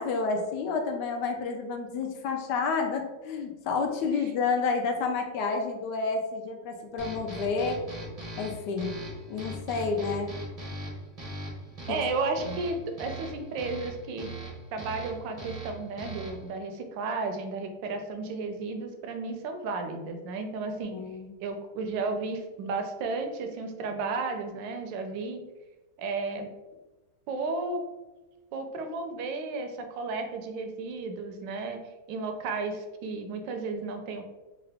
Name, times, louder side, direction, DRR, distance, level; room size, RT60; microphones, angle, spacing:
voice 1, 0.0-7.8 8.4-9.0 9.3-10.3 12.5-12.6 20.9-21.3, left 4 dB, 75° left, 4 dB, 1.1 m, -30 dB
sound 1, 7.0-16.5, right 1 dB, 40° right, 0.5 m, -40 dB
voice 2, 11.9-14.3 14.7-21.0 21.4-25.4 26.0-26.5 27.3-27.8 28.5-31.8 32.1-34.2, right 3 dB, 85° right, 5 dB, 1.3 m, -33 dB
3.8 x 2.4 x 3.3 m, 1.1 s
omnidirectional pair, 2.0 m